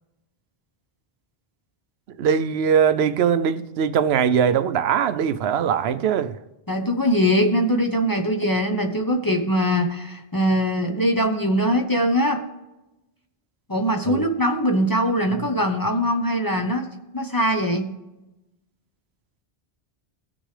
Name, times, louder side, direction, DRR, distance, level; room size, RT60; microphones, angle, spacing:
voice 1, 2.2-6.4 14.1-14.3, right 7 dB, 80° right, 0.8 m, -21 dB
voice 2, 6.7-12.4 13.7-16.9 17.1-17.9, equal, 20° left, 0.8 m, -22 dB
18.0 x 6.2 x 3.3 m
omnidirectional pair, 1.0 m